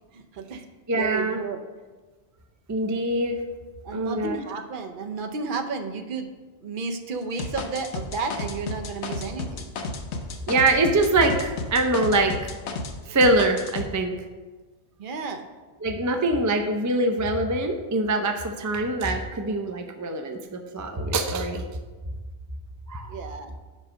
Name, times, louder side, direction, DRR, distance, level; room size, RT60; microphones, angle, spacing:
voice 1, 0.1-0.6 1.0-1.6 3.8-6.3 6.6-9.7 15.0-15.5 23.1-23.5, right 4 dB, 55° right, 5 dB, 0.8 m, -32 dB
voice 2, 0.9-1.4 2.7-3.4 3.9-4.4 10.5-12.5 13.1-14.2 15.8-21.6 22.9-23.2, right 2 dB, 30° right, 5 dB, 0.3 m, -24 dB
sound 1, 7.4-13.0 13.2-13.9, left 3 dB, 90° left, 1.0 m, -32 dB
5.4 x 5.3 x 6.1 m, 1.3 s
omnidirectional pair, 1.1 m